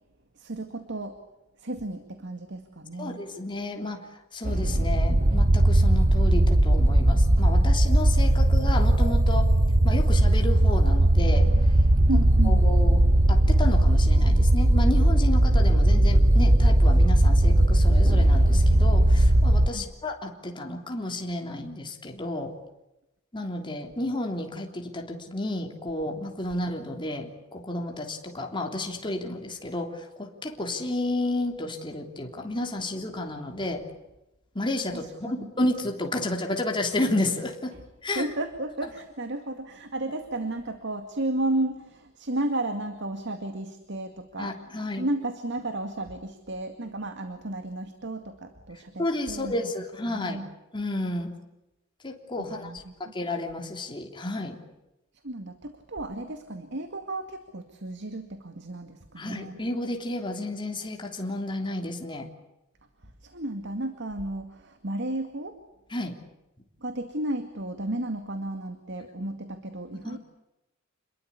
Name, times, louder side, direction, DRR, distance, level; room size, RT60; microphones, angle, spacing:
voice 1, 0.4-1.1 1.6-3.2 12.1-12.7 19.7-19.9 34.9-35.5 37.7-37.8 38.2-49.7 50.1-50.5 52.4-52.9 55.2-59.6 63.2-65.6 66.8-70.2, right 1 dB, 60° right, 8 dB, 2.1 m, -33 dB
voice 2, 3.0-4.0 4.3-9.5 9.8-11.5 12.4-13.0 13.3-22.5 23.3-33.8 34.5-37.7 38.0-38.3 44.4-45.1 49.0-50.4 50.7-51.3 52.0-54.6 59.2-62.3 65.9-66.2 70.0-70.2, left 1 dB, 25° left, 3 dB, 3.3 m, -31 dB
sound 1, 4.4-19.7, right 1 dB, 40° right, 1.0 m, -19 dB
27.5 x 22.0 x 8.4 m, 0.95 s
head